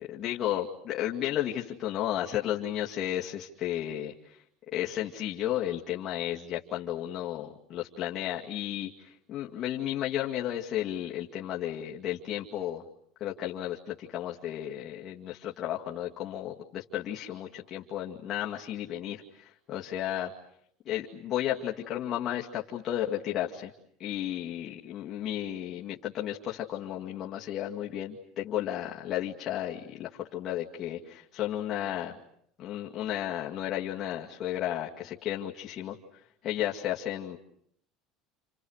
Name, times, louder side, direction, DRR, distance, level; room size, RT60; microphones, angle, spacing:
voice 1, 0.1-4.4 4.7-12.8 13.2-20.3 20.9-23.7 24.0-32.1 32.6-36.0 36.4-37.4, left 12 dB, 40° left, -2 dB, 2.3 m, -33 dB
30.0 x 29.0 x 6.6 m, 0.69 s
cardioid pair, 150°, 0 cm